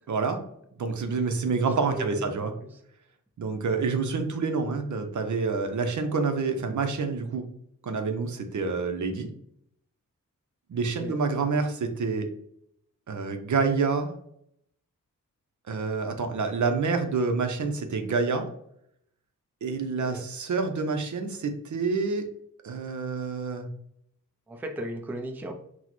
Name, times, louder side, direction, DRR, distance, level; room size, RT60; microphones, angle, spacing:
voice 1, 0.1-0.4 0.8-2.5 3.4-7.4 7.8-9.3 10.7-12.3 13.1-14.1 15.7-18.5 19.6-22.3 22.6-23.7, right 4 dB, 65° right, 6 dB, 0.6 m, -27 dB
voice 2, 1.8-2.8 10.8-11.2 20.0-20.3 24.5-25.5, right 1 dB, 5° right, 3 dB, 0.4 m, -37 dB
6.0 x 2.1 x 3.0 m, 0.71 s
wide cardioid pair, 165°, 32 cm